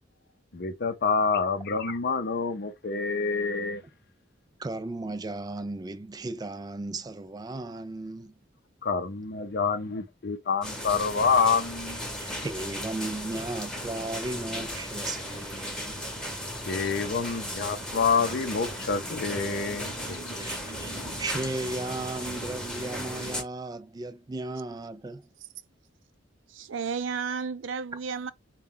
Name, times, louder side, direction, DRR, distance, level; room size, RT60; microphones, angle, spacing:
voice 1, 0.5-3.8 8.8-12.0 16.7-20.4, left 5 dB, 55° left, 0.5 m, -27 dB
voice 2, 4.6-8.3 12.2-16.1 19.2-19.3 20.2-25.3, right 2 dB, 20° right, 0.3 m, -36 dB
sound 1, 10.6-23.4, equal, 5° left, 0.8 m, -36 dB
voice 3, 26.5-28.3, right 5 dB, 75° right, 0.5 m, -32 dB
4.1 x 2.2 x 3.7 m
head